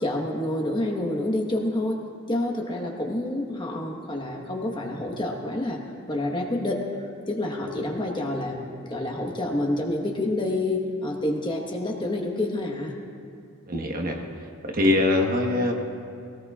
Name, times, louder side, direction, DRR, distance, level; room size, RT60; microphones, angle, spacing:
voice 1, 0.0-2.0 2.3-5.8 6.1-6.8 7.3-12.9, left 1 dB, 20° left, 1 dB, 1.3 m, -28 dB
voice 2, 13.7-14.2 14.7-15.7, left 2 dB, 40° right, 2 dB, 1.2 m, -22 dB
21.5 x 18.0 x 2.4 m, 2.4 s
head